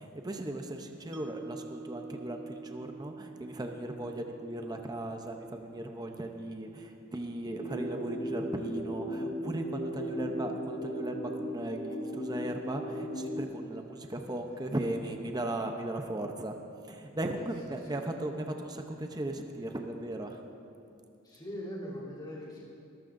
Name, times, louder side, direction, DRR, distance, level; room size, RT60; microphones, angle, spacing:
voice 1, 0.0-16.5 16.9-20.4, right 1 dB, 20° right, 4 dB, 0.7 m, -37 dB
Mallet percussion, 1.1-7.3, right 3 dB, 60° right, 1.0 m, -48 dB
sound 1, 7.4-13.4, equal, 75° left, 3.8 m, -36 dB
voice 2, 13.9-14.4 14.7-14.8 17.3-17.9 21.2-22.7, equal, 20° left, -8 dB, 3.3 m, -43 dB
21.0 x 14.0 x 2.6 m, 2.6 s
head